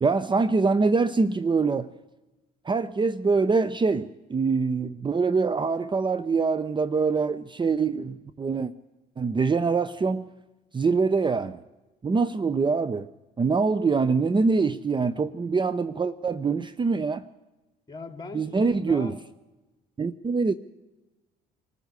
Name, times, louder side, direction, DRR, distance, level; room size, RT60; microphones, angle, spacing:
voice 1, 0.0-1.9 2.6-8.7 9.2-10.3 10.7-11.6 12.0-13.1 13.4-17.3 18.3-19.1 20.0-20.5, right 4 dB, 25° right, 14 dB, 0.8 m, -24 dB
voice 2, 17.9-19.2, left 3 dB, 20° left, 6 dB, 3.0 m, -40 dB
25.0 x 14.0 x 8.2 m, 1.1 s
supercardioid pair, 70°, 19 cm